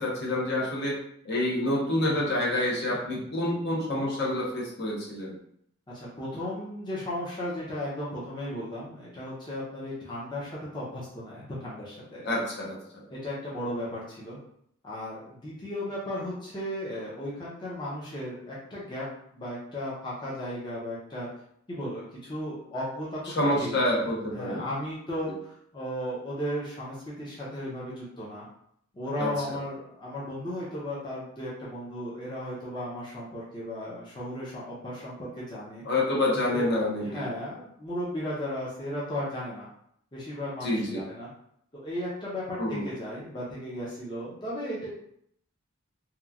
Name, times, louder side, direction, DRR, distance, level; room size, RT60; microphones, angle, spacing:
voice 1, 0.0-5.4 12.2-13.0 23.3-24.6 29.2-29.6 35.8-37.3 40.6-41.0 42.6-42.9, left 1 dB, 55° left, -3 dB, 0.8 m, -28 dB
voice 2, 5.9-12.3 13.1-14.4 14.8-19.1 19.3-21.3 21.7-23.2 23.6-23.8 24.3-28.5 28.9-35.8 36.3-36.6 37.0-39.7 40.1-41.3 41.7-44.9, left 1 dB, 20° left, -7 dB, 0.6 m, -35 dB
2.9 x 2.2 x 2.4 m, 0.69 s
head